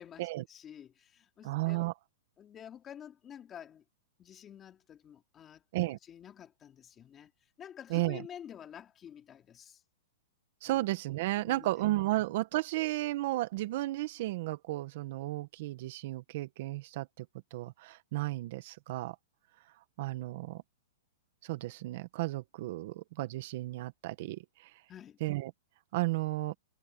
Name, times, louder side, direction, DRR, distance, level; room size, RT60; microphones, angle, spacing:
voice 1, 0.0-1.8 2.4-3.8 4.2-5.6 6.0-9.8 10.6-10.8 11.4-11.7 12.1-12.2 24.9-25.2, left 9 dB, 20° left, 3.3 m, -50 dB
voice 2, 1.4-1.9 5.7-6.0 7.9-8.2 10.6-17.3 17.5-19.1 20.0-20.6 21.4-24.4 25.2-25.5 25.9-26.5, right 18 dB, 50° right, 1.6 m, -33 dB
hypercardioid pair, 160°, 0 cm